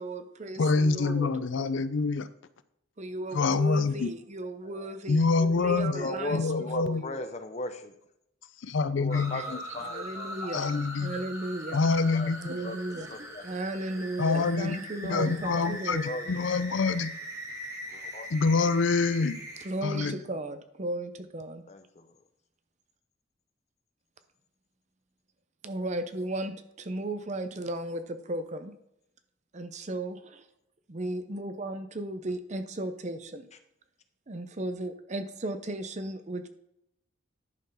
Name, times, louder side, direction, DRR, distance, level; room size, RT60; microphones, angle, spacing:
voice 1, 0.0-1.3 3.0-6.4 6.8-7.2 9.3-9.4 9.9-10.7 11.0-11.8 12.4-13.1 13.4-16.0 19.6-21.6 25.6-28.7 29.5-30.4 30.9-33.5 34.3-36.5, right 1 dB, 35° right, 9 dB, 0.7 m, -35 dB
voice 2, 0.6-2.3 3.3-4.1 5.1-7.0 8.6-9.6 10.5-11.2 11.7-12.6 14.2-14.8 15.0-17.1 18.3-19.4 19.8-20.2, left 4 dB, 70° left, 13 dB, 0.5 m, -26 dB
voice 3, 4.6-5.0 5.9-7.9 8.9-10.6 12.1-12.3 12.6-12.8 13.1-13.6 14.9-15.2 15.5-16.3 17.9-18.3 21.7-22.2, left 2 dB, 35° left, 8 dB, 0.8 m, -38 dB
sound 1, 9.1-19.7, right 1 dB, 15° right, 1.4 m, -41 dB
10.5 x 4.6 x 5.5 m, 0.78 s
head